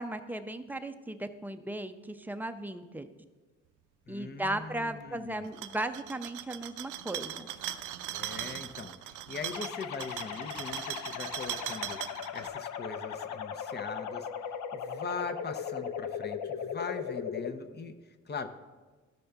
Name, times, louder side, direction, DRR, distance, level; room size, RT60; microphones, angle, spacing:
voice 1, 0.0-3.1 4.1-7.5, right 1 dB, 5° right, 8 dB, 0.5 m, -36 dB
voice 2, 4.1-5.5 8.1-17.9 18.3-18.5, left 4 dB, 35° left, 8 dB, 0.7 m, -41 dB
sound 1, 5.4-12.5, right 12 dB, 90° right, 0.5 m, -39 dB
sound 2, 9.5-17.5, left 7 dB, 75° left, 0.6 m, -38 dB
13.5 x 5.3 x 3.4 m, 1.3 s
cardioid pair, 90°, 30 cm